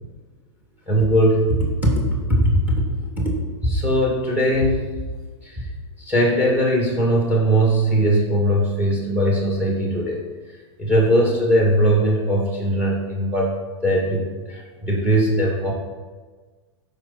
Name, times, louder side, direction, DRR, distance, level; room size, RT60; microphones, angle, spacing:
voice 1, 0.9-1.9 2.3-2.5 3.2-3.3 3.6-4.8 5.5-5.6 6.1-10.2 10.8-13.5 13.8-15.7, right 1 dB, 10° right, -1 dB, 2.3 m, -19 dB
13.0 x 5.1 x 4.2 m, 1.3 s
hypercardioid pair, 115°, 15 cm